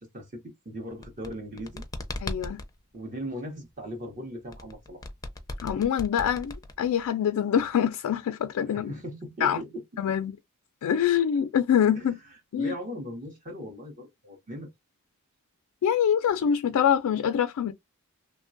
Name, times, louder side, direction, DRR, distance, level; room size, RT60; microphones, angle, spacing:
voice 1, 0.1-1.8 2.9-5.0 8.7-9.8 11.9-12.1 12.6-14.7, equal, 35° right, 0.8 m, -38 dB
sound 1, 0.9-2.7 4.5-7.1, left 2 dB, 15° left, 0.4 m, -37 dB
voice 2, 2.2-2.6 5.6-8.9 9.4-9.6 10.0-10.4 10.8-12.2 12.5-12.7 15.8-17.7, left 8 dB, 80° left, 0.3 m, -25 dB
3.0 x 2.2 x 2.5 m
head